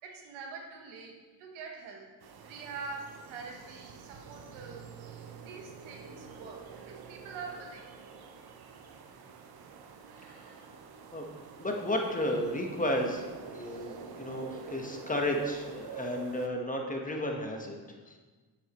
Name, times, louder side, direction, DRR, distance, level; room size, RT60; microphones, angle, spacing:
voice 1, 0.0-2.1 2.4-5.1 5.4-8.0, right 4 dB, 80° right, 1 dB, 1.4 m, -45 dB
sound 1, 2.2-16.5, right 6 dB, 50° right, 0.9 m, -47 dB
voice 2, 10.3-10.6 11.1-11.3 11.6-17.8 18.1-18.2, left 1 dB, 15° left, 1 dB, 1.4 m, -33 dB
7.7 x 7.4 x 3.2 m, 1.3 s
supercardioid pair, 65°, 47 cm